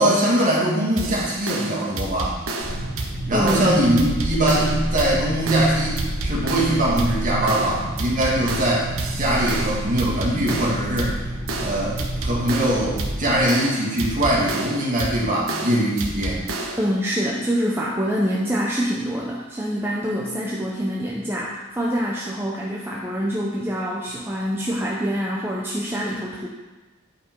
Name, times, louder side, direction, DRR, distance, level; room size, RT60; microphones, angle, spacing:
voice 1, 0.0-2.4 3.3-8.9 9.2-11.2 11.6-16.4, right 1 dB, 40° right, -4 dB, 2.1 m, -22 dB
sound 1, 1.0-16.9, right 2 dB, 85° right, 1.1 m, -30 dB
sound 2, 2.6-13.4, right 1 dB, 30° left, 1.7 m, -30 dB
voice 2, 3.3-3.7 16.8-26.5, equal, 10° right, -4 dB, 0.8 m, -25 dB
9.3 x 5.4 x 4.6 m, 1.2 s
head